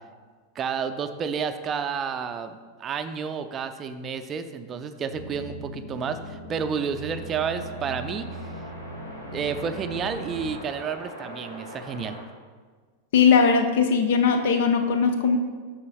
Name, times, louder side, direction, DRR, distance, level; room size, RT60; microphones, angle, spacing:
voice 1, 0.6-8.3 9.3-12.2, right 6 dB, 25° right, 9 dB, 0.4 m, -30 dB
sound 1, 5.1-10.6, equal, 85° right, 0.6 m, -39 dB
sound 2, 6.5-12.2, equal, 85° left, 1.4 m, -43 dB
voice 2, 13.1-15.4, left 6 dB, 55° left, 7 dB, 0.5 m, -19 dB
9.4 x 6.4 x 2.3 m, 1.5 s
figure-of-eight pair, 90°, 0 cm